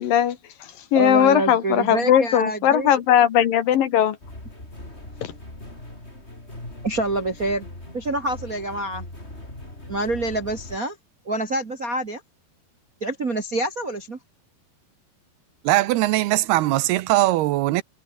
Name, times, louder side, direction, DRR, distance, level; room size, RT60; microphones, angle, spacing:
voice 1, 0.0-4.2 5.2-5.3, left 10 dB, 65° left, 3.1 m, -19 dB
voice 2, 0.9-2.9 6.8-7.6 7.9-9.0 9.9-11.0 11.2-12.2 13.0-14.2, right 2 dB, 40° right, 1.2 m, -26 dB
sound 1, 4.2-10.8, left 1 dB, 15° left, 6.9 m, -40 dB
voice 3, 15.6-17.8, right 16 dB, 85° right, 2.8 m, -20 dB
omnidirectional pair, 4.6 m